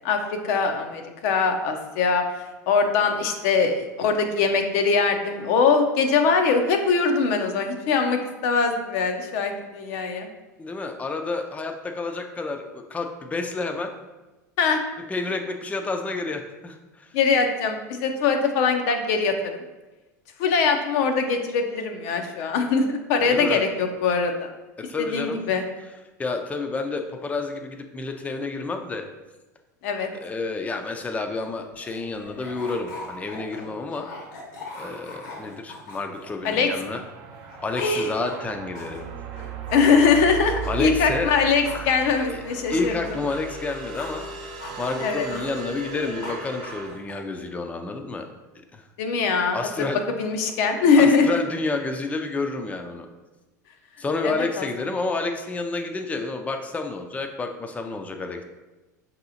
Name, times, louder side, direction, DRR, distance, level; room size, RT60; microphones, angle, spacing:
voice 1, 0.4-2.2 2.7-10.3 14.6-14.8 17.1-19.4 20.4-24.5 25.1-25.7 29.8-30.1 36.4-36.7 37.8-38.1 39.7-42.9 45.0-45.3 49.0-49.6 50.2-51.4 54.2-54.6, left 5 dB, 65° left, 5 dB, 0.5 m, -22 dB
voice 2, 10.6-13.9 15.1-17.1 23.3-23.6 24.8-25.4 26.2-29.1 30.2-34.1 34.8-37.0 37.6-39.1 40.7-41.3 41.7-42.0 42.3-42.4 42.7-44.5 44.8-48.3 48.7-48.8 49.5-50.0 51.0-53.1 54.0-58.4, left 3 dB, 15° left, 4 dB, 0.4 m, -30 dB
sound 1, 31.5-37.0 37.3-40.8 41.3-44.3 44.6-47.3, left 2 dB, 80° left, 1.1 m, -41 dB
sound 2, 36.5-46.9, right 7 dB, 50° right, 0.5 m, -37 dB
5.3 x 2.8 x 2.6 m, 1.1 s
hypercardioid pair, 80°, 9 cm